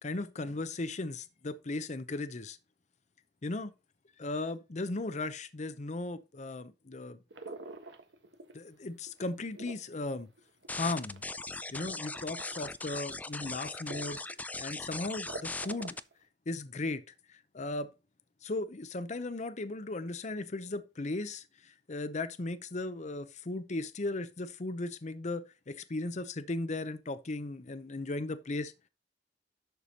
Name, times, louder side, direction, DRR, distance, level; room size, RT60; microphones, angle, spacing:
voice 1, 0.0-2.6 3.4-3.7 4.2-7.2 8.5-10.3 10.7-11.2 11.7-14.2 14.6-16.0 16.5-17.0 17.3-17.9 18.4-28.7, left 2 dB, 40° left, 0.7 m, -36 dB
sound 1, 7.3-8.7 9.1-11.3 12.1-12.6 13.1-13.2 13.9-14.3 14.6-14.7 15.0-16.1, right 3 dB, 80° right, 1.3 m, -45 dB
sound 2, 10.7-16.0, left 3 dB, 10° left, 0.4 m, -39 dB
11.0 x 6.8 x 2.9 m
head